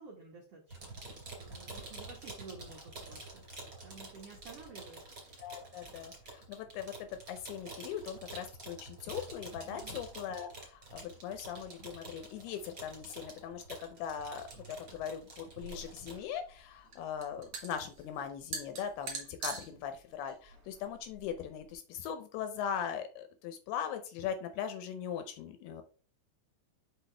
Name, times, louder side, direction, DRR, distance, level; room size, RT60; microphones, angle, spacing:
voice 1, 0.0-5.5 9.7-10.0, right 4 dB, 80° right, -2 dB, 1.3 m, -52 dB
sound 1, 0.7-16.2, right 2 dB, 30° right, 2.2 m, -48 dB
voice 2, 5.4-25.8, left 8 dB, 80° left, 8 dB, 2.4 m, -40 dB
sound 2, 15.6-21.7, right 4 dB, 45° right, 2.0 m, -45 dB
6.0 x 5.5 x 3.3 m, 0.39 s
omnidirectional pair, 5.0 m